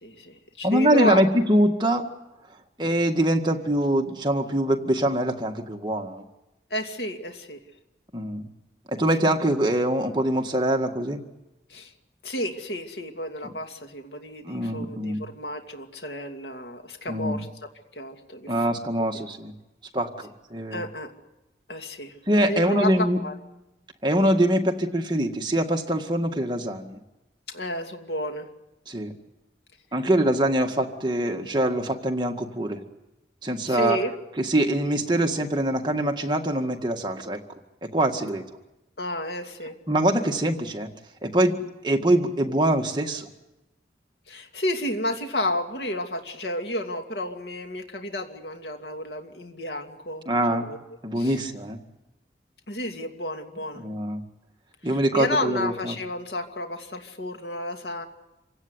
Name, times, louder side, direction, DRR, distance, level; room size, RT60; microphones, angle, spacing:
voice 1, 0.0-1.4 6.7-7.6 11.7-11.9 12.2-17.5 17.9-18.7 20.7-21.1 21.7-22.2 22.5-23.3 27.5-28.5 33.7-34.1 39.0-39.8 44.3-50.8 51.2-51.4 52.7-53.8 54.8-58.0, left 1 dB, 75° left, 4 dB, 2.6 m, -31 dB
voice 2, 0.6-2.0 2.8-6.2 8.1-8.5 8.9-11.2 14.4-15.3 17.1-17.5 18.5-19.5 19.9-20.8 22.3-23.2 24.0-27.0 28.9-29.1 29.9-32.8 33.4-34.0 34.4-37.4 37.9-38.5 39.9-40.9 41.2-41.6 41.8-43.3 50.3-50.7 51.0-51.8 53.8-54.2 54.8-56.0, right 1 dB, 25° right, 3 dB, 1.9 m, -24 dB
27.0 x 17.0 x 9.8 m, 0.96 s
head